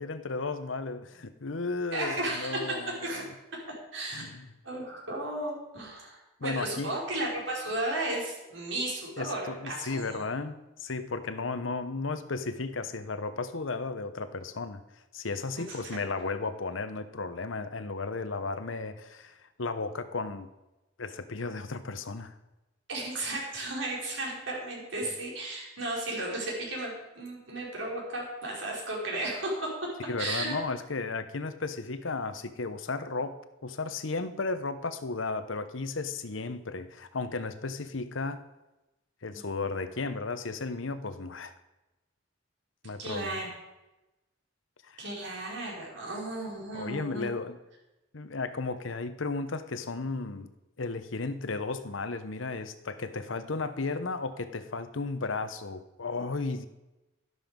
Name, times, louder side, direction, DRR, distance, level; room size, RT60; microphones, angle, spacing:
voice 1, 0.0-3.3 4.1-4.5 6.4-6.9 9.2-14.8 15.1-20.5 21.0-22.3 30.1-38.4 39.2-41.5 42.8-43.3 44.8-45.0 46.7-47.6 48.1-50.5 50.8-56.7, left 3 dB, 85° left, 11 dB, 0.9 m, -34 dB
voice 2, 1.9-3.2 3.9-4.3 4.6-10.2 15.6-16.0 22.9-29.9 30.2-30.6 39.3-39.6 43.0-43.5 45.0-47.3, right 1 dB, 80° right, -3 dB, 5.2 m, -34 dB
12.5 x 11.5 x 5.3 m, 1.0 s
head